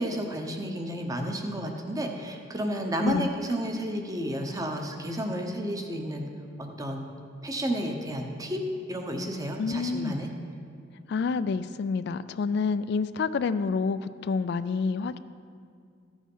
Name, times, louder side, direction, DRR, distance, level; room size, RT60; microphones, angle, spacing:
voice 1, 0.0-6.3 6.6-7.1 7.4-8.6 8.9-10.3, equal, 20° right, 3 dB, 0.9 m, -31 dB
voice 2, 9.6-10.1 11.1-15.2, left 4 dB, 60° left, 13 dB, 0.3 m, -28 dB
14.0 x 6.3 x 5.5 m, 2.3 s
head